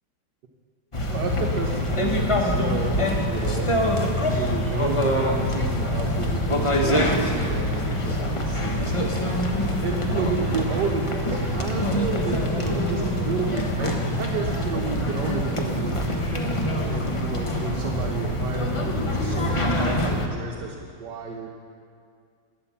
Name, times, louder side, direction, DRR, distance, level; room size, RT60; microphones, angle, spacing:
sound 1, 0.9-20.3, left 1 dB, 30° left, 0.6 m, -25 dB
voice 1, 1.1-3.9 4.3-9.2 9.8-16.3 16.8-21.6, right 5 dB, 65° right, 1 dB, 1.4 m, -32 dB
12.5 x 8.7 x 7.1 m, 2.3 s
omnidirectional pair, 2.2 m